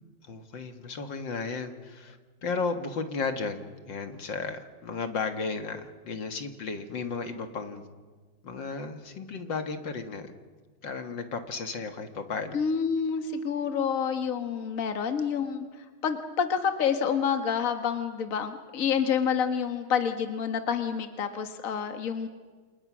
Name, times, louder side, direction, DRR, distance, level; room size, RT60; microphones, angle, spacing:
voice 1, 0.3-7.8 8.4-10.3 10.8-12.6, left 4 dB, 65° left, 7 dB, 2.3 m, -34 dB
voice 2, 12.5-15.7 16.0-22.3, left 7 dB, 45° left, 7 dB, 1.9 m, -28 dB
29.0 x 28.0 x 6.2 m, 1.4 s
omnidirectional pair, 2.2 m